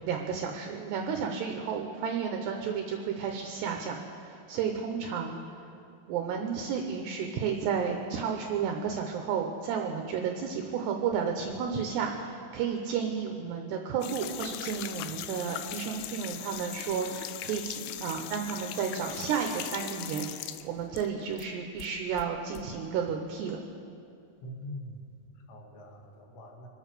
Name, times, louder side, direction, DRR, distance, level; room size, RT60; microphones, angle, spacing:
voice 1, 0.1-5.6 6.1-23.6, right 6 dB, 80° right, 3 dB, 2.5 m, -32 dB
sound 1, 14.0-21.5 21.8-22.7, left 12 dB, 85° left, 2.8 m, -40 dB
voice 2, 24.4-26.7, equal, 65° left, 0 dB, 3.8 m, -44 dB
25.0 x 8.6 x 6.7 m, 2.5 s
omnidirectional pair, 6.0 m